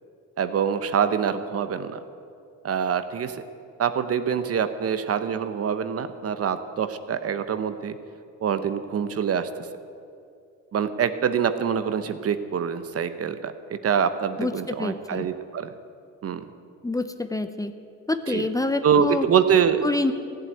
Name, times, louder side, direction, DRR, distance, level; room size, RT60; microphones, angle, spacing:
voice 1, 0.4-2.0 2.6-3.4 3.8-8.0 8.4-9.7 10.7-15.7 16.2-16.4 18.3-18.5 18.8-19.8, right 7 dB, 50° right, 11 dB, 0.9 m, -25 dB
voice 2, 14.8-15.3 16.8-17.7 18.1-19.3 19.8-20.1, left 2 dB, 10° left, 9 dB, 0.7 m, -26 dB
15.0 x 7.8 x 9.1 m, 2.5 s
cardioid pair, 90°, 30 cm